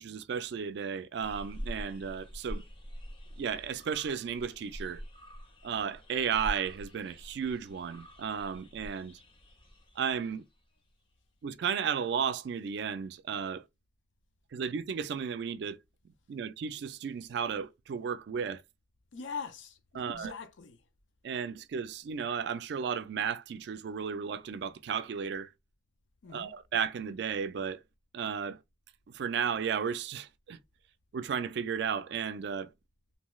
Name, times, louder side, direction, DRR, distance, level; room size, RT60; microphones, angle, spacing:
voice 1, 0.0-2.6 3.4-5.0 5.6-9.2 10.0-10.4 11.4-13.6 14.5-15.8 16.3-18.6 20.0-20.3 21.2-25.5 26.3-27.8 28.1-28.6 29.1-30.6 31.1-32.7, right 7 dB, 60° right, 0.3 m, -34 dB
sound 1, 1.2-10.6 12.0-12.1, equal, 30° left, 0.5 m, -45 dB
voice 2, 19.1-20.9 26.2-26.6, left 5 dB, 85° left, 0.5 m, -42 dB
2.6 x 2.3 x 3.0 m
head